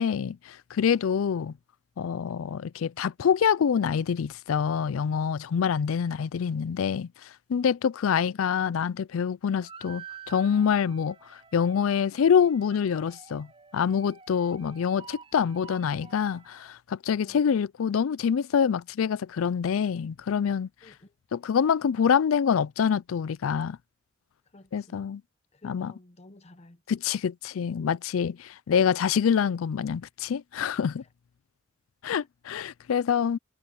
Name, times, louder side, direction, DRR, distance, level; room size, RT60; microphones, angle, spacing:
voice 1, 0.0-1.5 2.0-13.5 13.7-20.7 21.3-23.8 24.7-25.2 25.6-25.9 26.9-31.0 32.0-33.4, left 7 dB, 90° left, 0.4 m, -26 dB
sound 1, 9.6-16.7, right 6 dB, 30° right, 3.9 m, -49 dB
voice 2, 20.8-21.1 24.4-25.1 25.5-26.8 32.0-32.3, left 2 dB, 35° left, 0.9 m, -53 dB
head